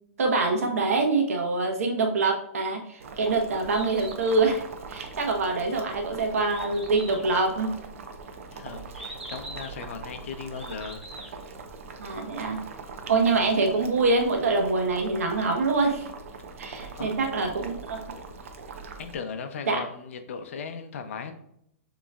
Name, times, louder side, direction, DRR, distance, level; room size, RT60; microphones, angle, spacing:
voice 1, 0.2-4.6 4.9-7.7 12.0-12.6 13.1-16.1 16.6-18.0 19.7-19.8, right 3 dB, 85° right, 2 dB, 1.2 m, -25 dB
Boiling, 3.0-19.1, right 4 dB, 70° right, 0.7 m, -42 dB
Bird, 3.6-11.5, right 1 dB, 5° right, 0.8 m, -45 dB
voice 2, 8.5-11.4 17.0-17.3 19.0-21.3, left 5 dB, 65° left, 7 dB, 0.6 m, -37 dB
6.8 x 3.1 x 2.4 m, 0.74 s
hypercardioid pair, 160°, 8 cm